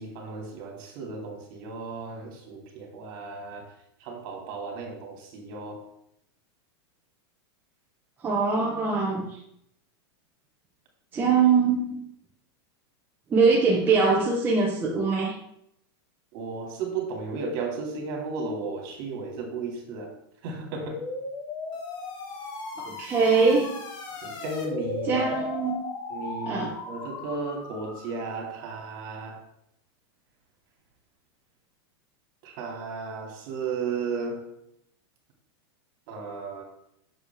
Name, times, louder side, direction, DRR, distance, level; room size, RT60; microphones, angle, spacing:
voice 1, 0.0-3.7 4.0-5.9 16.3-20.1 20.4-21.0 24.2-25.4 26.1-29.4 32.4-34.5 36.1-36.6, right 4 dB, 50° right, 1 dB, 2.4 m, -34 dB
voice 2, 8.2-9.4 11.1-12.0 13.3-15.4 22.8-23.7 25.1-25.8 26.5-26.8, right 4 dB, 15° right, -2 dB, 0.8 m, -22 dB
sound 1, 20.8-28.3, left 3 dB, 30° left, 1.4 m, -36 dB
8.0 x 6.6 x 3.5 m, 0.76 s
supercardioid pair, 160°, 14 cm